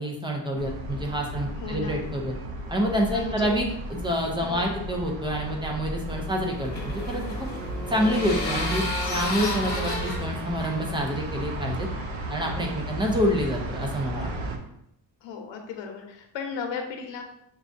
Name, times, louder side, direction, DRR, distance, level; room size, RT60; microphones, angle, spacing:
voice 1, 0.0-2.3 2.7-7.2 7.9-8.8 9.1-11.9 12.3-14.3, equal, 10° right, 0 dB, 0.4 m, -27 dB
sound 1, 0.6-14.6, right 1 dB, 80° right, 0.7 m, -34 dB
voice 2, 1.6-2.0 3.1-3.5 4.4-4.8 15.2-17.2, left 5 dB, 80° left, 3 dB, 0.9 m, -35 dB
sound 2, 6.0-11.6, left 2 dB, 20° left, 1.0 m, -32 dB
6.1 x 2.3 x 2.6 m, 0.77 s
cardioid pair, 155°, 44 cm